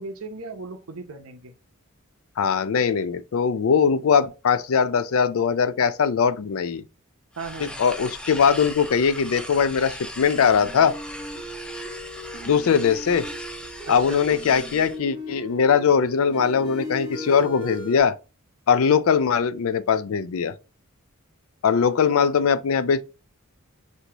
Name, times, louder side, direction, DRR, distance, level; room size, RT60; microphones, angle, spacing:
voice 1, 0.0-1.5 7.4-7.8 13.9-14.2, right 3 dB, 75° right, 0.7 m, -36 dB
voice 2, 2.4-6.8 7.6-11.0 12.4-13.2 13.9-18.2 18.7-20.5 21.6-23.0, left 6 dB, 70° left, 0.4 m, -21 dB
sound 1, 7.3-15.0, left 1 dB, 5° left, 0.3 m, -39 dB
sound 2, 10.4-18.0, equal, 20° left, 1.5 m, -38 dB
6.2 x 2.7 x 2.9 m
head